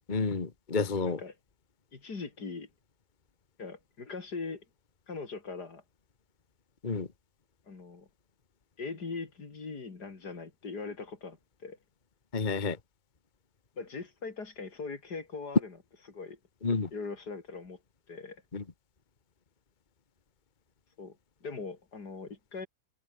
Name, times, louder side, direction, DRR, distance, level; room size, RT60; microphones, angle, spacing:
voice 1, 0.1-1.2 6.8-7.1 12.3-12.8 16.6-16.9 18.5-18.6, left 4 dB, 30° left, 1.5 m, -30 dB
voice 2, 1.1-1.4 1.9-2.7 3.6-4.7 5.1-5.8 7.7-8.1 8.8-11.4 11.6-11.8 13.8-15.8 16.1-16.4 16.9-17.8 18.1-18.4 21.0-21.2 21.4-22.7, left 4 dB, 65° left, 3.5 m, -40 dB
omnidirectional pair, 1.9 m